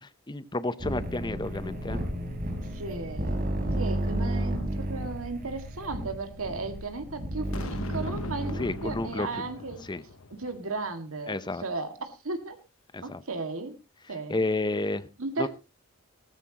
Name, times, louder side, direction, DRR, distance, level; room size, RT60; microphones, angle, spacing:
voice 1, 0.3-2.0 8.6-9.5 9.9-10.0 11.3-11.6 12.9-13.2 14.3-15.1 15.4-15.5, left 2 dB, 20° left, 14 dB, 0.7 m, -31 dB
sound 1, 0.8-9.0, right 1 dB, 40° right, 4.2 m, -32 dB
voice 2, 2.7-3.4 3.8-9.8 10.4-12.6 13.0-13.7 14.1-14.5 15.2-15.5, right 3 dB, 75° right, 7 dB, 2.0 m, -35 dB
Boom, 7.5-10.8, left 2 dB, 75° left, 1.1 m, -40 dB
15.0 x 14.0 x 2.9 m, 0.28 s
head